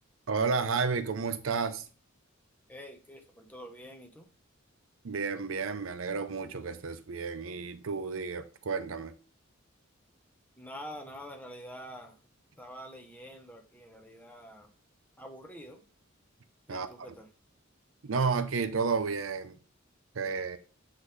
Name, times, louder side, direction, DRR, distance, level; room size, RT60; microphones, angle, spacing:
voice 1, 0.3-1.8 5.0-9.1 16.7-16.9 18.0-19.6 20.1-20.6, right 5 dB, 75° right, 0.6 m, -31 dB
voice 2, 2.7-4.3 10.6-12.2 12.6-14.7 15.2-15.8 16.7-17.3, equal, 10° left, 1.0 m, -46 dB
8.0 x 3.8 x 3.3 m
head